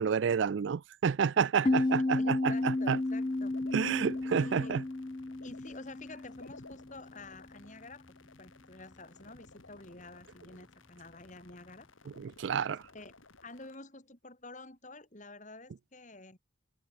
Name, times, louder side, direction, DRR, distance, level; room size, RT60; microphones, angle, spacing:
voice 1, 0.0-3.0 3.7-4.8 12.2-12.8, right 6 dB, 65° right, 0.4 m, -29 dB
voice 2, 1.4-3.6 4.3-4.8 5.4-8.0 8.4-11.9 12.6-13.1 13.4-16.4, left 2 dB, 40° left, 3.4 m, -49 dB
sound 1, 1.7-7.0, left 2 dB, 25° left, 0.4 m, -32 dB
sound 2, 2.5-13.8, left 3 dB, 85° left, 3.3 m, -56 dB
head